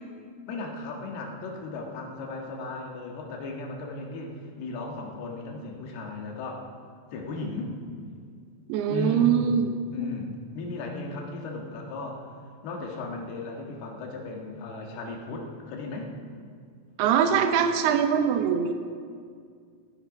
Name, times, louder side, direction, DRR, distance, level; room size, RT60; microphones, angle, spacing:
voice 1, 0.5-6.7 7.1-7.7 8.9-9.5 9.9-10.3 10.5-12.3 12.6-16.1, left 3 dB, 60° left, 0 dB, 3.2 m, -36 dB
voice 2, 8.7-9.7 17.0-18.7, right 8 dB, 85° right, 7 dB, 2.3 m, -22 dB
15.0 x 15.0 x 5.2 m, 2.1 s
omnidirectional pair, 5.8 m